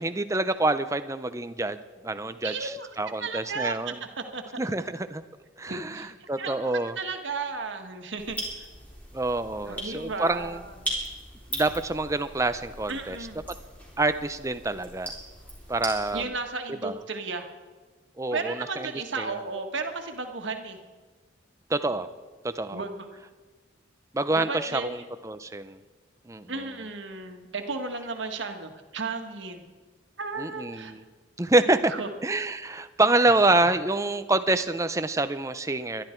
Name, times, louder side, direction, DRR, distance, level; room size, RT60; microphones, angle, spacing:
voice 1, 0.0-1.8 2.0-4.0 4.6-5.2 5.6-6.9 9.1-10.6 11.5-13.2 14.0-15.1 15.7-16.2 16.8-16.9 18.2-18.9 19.2-19.3 21.7-22.1 22.5-22.8 24.1-25.8 26.3-26.5 30.4-31.0 31.4-31.9 32.2-36.0, right 2 dB, 15° right, 10 dB, 0.6 m, -26 dB
voice 2, 2.4-2.9 3.2-3.9 4.3-4.4 4.9-5.0 5.7-6.1 6.4-6.7 7.0-8.7 9.7-10.9 12.9-13.4 16.1-17.5 18.3-20.8 22.7-23.2 24.3-25.1 26.5-29.6 30.2-30.9 31.9-32.1, right 4 dB, 70° right, 5 dB, 1.6 m, -34 dB
sound 1, 8.2-16.2, right 1 dB, 10° left, 3.9 m, -39 dB
21.5 x 12.0 x 4.5 m, 1.4 s
head